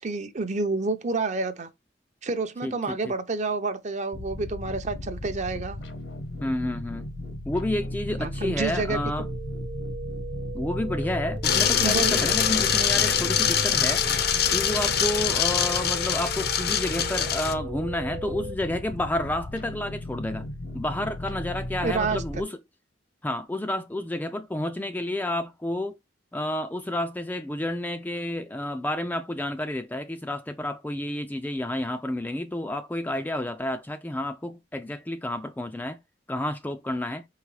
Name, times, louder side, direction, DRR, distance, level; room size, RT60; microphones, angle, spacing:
voice 1, 0.0-1.7 2.2-5.8 8.2-9.0 11.8-12.3 21.8-22.4, right 3 dB, 40° right, 0.6 m, -29 dB
voice 2, 2.6-3.1 6.4-7.0 7.5-9.3 10.5-14.0 14.5-20.5 20.7-22.6 23.2-26.0 26.3-36.0 36.3-37.3, left 1 dB, 10° left, 0.3 m, -30 dB
sound 1, 4.1-22.4, left 1 dB, 80° left, 1.0 m, -36 dB
sound 2, 9.0-18.5, right 4 dB, 90° right, 0.8 m, -39 dB
sound 3, 11.4-17.5, left 8 dB, 55° left, 0.6 m, -24 dB
4.8 x 3.1 x 3.2 m
head